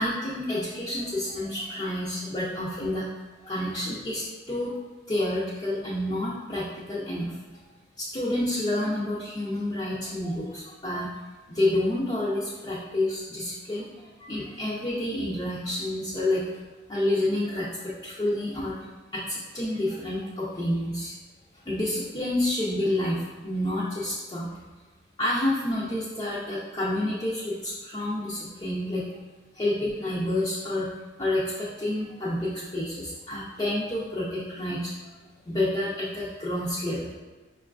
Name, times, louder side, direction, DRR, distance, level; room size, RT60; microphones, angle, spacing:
voice 1, 0.0-3.1 3.4-4.7 5.1-7.4 8.0-11.1 11.5-16.4 16.9-18.8 19.1-21.1 21.7-24.5 25.2-29.0 29.5-30.9 31.2-34.9 35.5-37.1, left 1 dB, 25° left, -9 dB, 0.5 m, -29 dB
5.2 x 2.4 x 2.3 m, 1.2 s
head